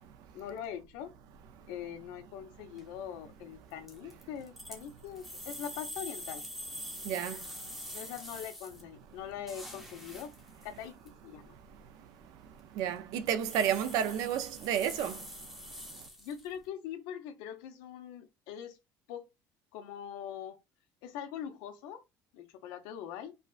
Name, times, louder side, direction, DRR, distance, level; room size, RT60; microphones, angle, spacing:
voice 1, 0.3-1.1 1.7-6.4 7.9-10.3 10.6-11.5 16.2-18.8 19.1-19.3 19.7-20.6 21.0-22.0 22.3-23.3, left 9 dB, 85° left, 0.9 m, -42 dB
sound 1, 2.7-3.0 3.7-8.8 9.1-11.1 11.7-11.8 12.2-12.6 12.9-13.0 13.3-16.6, equal, ahead, 0.8 m, -45 dB
voice 2, 6.8-8.0 11.5-16.1, right 9 dB, 60° right, 0.5 m, -34 dB
4.9 x 2.2 x 2.4 m
cardioid pair, 175°, 7 cm